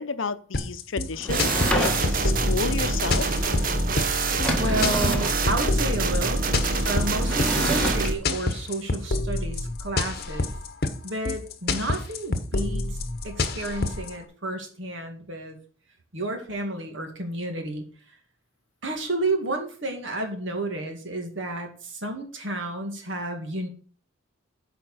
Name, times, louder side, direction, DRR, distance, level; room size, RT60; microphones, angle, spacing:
voice 1, 0.0-3.3, left 4 dB, 70° left, 0.7 m, -32 dB
sound 1, 0.5-14.1, left 2 dB, 50° left, 1.1 m, -28 dB
Sliding door / Wood, 1.2-2.4 3.9-4.0 4.3-5.4 7.2-8.1, equal, 5° left, 1.7 m, -28 dB
sound 2, 1.3-8.1, right 3 dB, 40° right, 0.9 m, -25 dB
voice 2, 4.6-6.4 6.8-10.5 11.0-13.0 13.2-15.6 16.1-17.8 18.8-23.7, right 2 dB, 65° right, 2.2 m, -31 dB
9.0 x 5.1 x 6.4 m
head